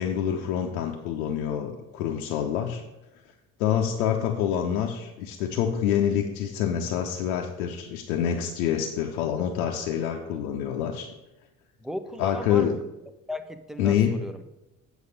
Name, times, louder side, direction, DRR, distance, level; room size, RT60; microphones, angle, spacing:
voice 1, 0.0-2.8 3.6-11.1 12.2-12.8 13.8-14.2, left 9 dB, 70° left, 2 dB, 0.8 m, -26 dB
voice 2, 11.8-12.8 13.3-14.5, left 1 dB, ahead, 9 dB, 0.5 m, -36 dB
8.1 x 4.8 x 6.4 m, 0.96 s
figure-of-eight pair, 50°, 45 cm